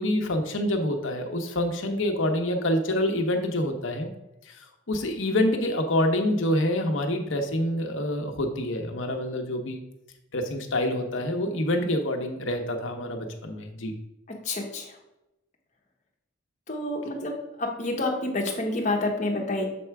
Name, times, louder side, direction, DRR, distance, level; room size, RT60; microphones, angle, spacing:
voice 1, 0.0-4.1 4.5-4.6 4.9-9.8 10.3-13.9, left 1 dB, 70° left, 4 dB, 0.9 m, -26 dB
voice 2, 14.4-14.9 16.7-17.3 17.6-19.7, left 2 dB, 35° left, 0 dB, 1.1 m, -28 dB
6.9 x 3.3 x 4.7 m, 0.90 s
head